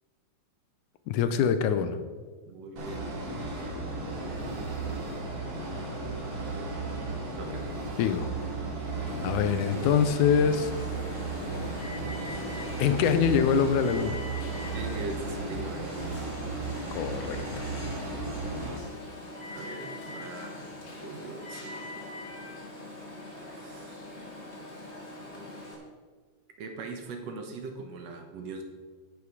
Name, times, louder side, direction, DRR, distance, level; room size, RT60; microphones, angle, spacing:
voice 1, 1.1-2.0 8.0-8.3 9.2-10.7 12.8-14.2 16.9-17.4, left 7 dB, 85° left, 10 dB, 2.2 m, -24 dB
voice 2, 2.5-3.2 3.5-3.6 7.4-7.6 14.7-15.9 19.5-20.7 21.0-21.9 23.5-23.9 26.6-28.6, right 3 dB, 65° right, 4 dB, 2.1 m, -41 dB
sound 1, 2.8-18.8, right 3 dB, 85° right, 4.1 m, -35 dB
Alarm, 9.1-25.8, left 2 dB, 25° left, 1.9 m, -42 dB
11.0 x 8.7 x 4.9 m, 1.4 s
omnidirectional pair, 3.4 m